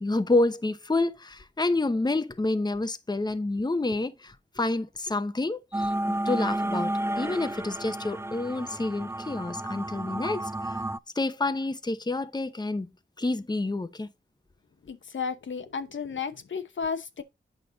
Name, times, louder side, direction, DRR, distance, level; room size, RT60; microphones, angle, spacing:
voice 1, 0.0-10.8 11.1-12.9 13.2-14.1, left 2 dB, 20° left, 0.8 m, -28 dB
sound 1, 5.7-11.0, right 1 dB, 15° right, 0.4 m, -31 dB
voice 2, 14.9-17.2, left 5 dB, 75° left, 1.0 m, -33 dB
8.6 x 5.4 x 3.9 m
cardioid pair, 50°, 20 cm